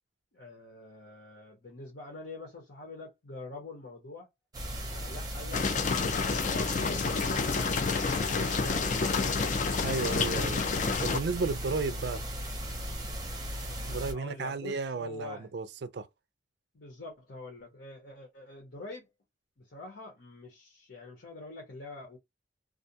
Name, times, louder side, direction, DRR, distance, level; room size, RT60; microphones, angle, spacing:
voice 1, 0.3-4.3 4.9-7.7 14.1-15.5 16.7-19.1 19.6-22.2, left 2 dB, 70° left, 0.9 m, -45 dB
sound 1, 4.5-14.1, equal, 20° right, 0.6 m, -37 dB
sound 2, 5.5-11.2, left 5 dB, 40° left, 0.3 m, -29 dB
voice 2, 9.8-12.2 13.9-16.1, right 4 dB, 65° right, 0.4 m, -33 dB
2.4 x 2.2 x 2.7 m
head